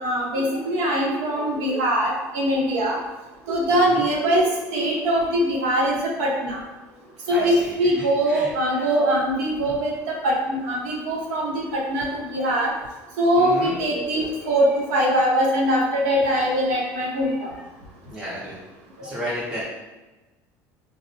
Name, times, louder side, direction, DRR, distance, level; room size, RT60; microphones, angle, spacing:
voice 1, 0.0-3.0 3.5-4.4 4.7-6.6 7.3-12.7 13.2-17.5, equal, 90° right, -2 dB, 0.8 m, -22 dB
voice 2, 7.3-7.7 8.3-8.5 8.8-8.9 13.4-13.7 17.3-17.4 18.1-18.5 19.0-19.6, equal, 10° right, -8 dB, 0.5 m, -32 dB
4.0 x 2.0 x 2.7 m, 1.1 s
cardioid pair, 175°, 7 cm